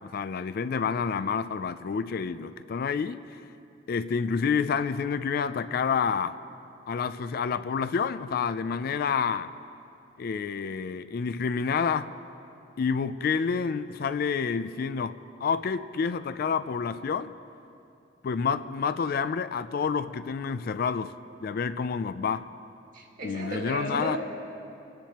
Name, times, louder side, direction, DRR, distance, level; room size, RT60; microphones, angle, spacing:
voice 1, 0.0-3.4 3.9-6.3 6.9-9.5 10.2-12.1 12.8-17.3 18.2-21.1 21.4-22.5 23.2-24.2, left 6 dB, 50° left, 12 dB, 0.3 m, -28 dB
voice 2, 22.9-24.2, right 1 dB, 45° right, -2 dB, 2.1 m, -34 dB
30.0 x 10.0 x 2.9 m, 2.8 s
head